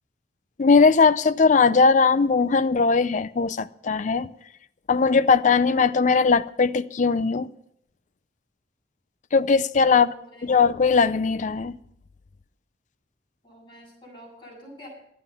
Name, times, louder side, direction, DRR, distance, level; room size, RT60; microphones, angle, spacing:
voice 1, 0.6-4.3 4.9-7.5 9.3-10.1 10.4-11.8, left 4 dB, 45° left, 0.4 m, -19 dB
voice 2, 9.9-10.5 13.4-14.9, equal, 25° left, 7.5 m, -47 dB
12.5 x 9.5 x 6.9 m
head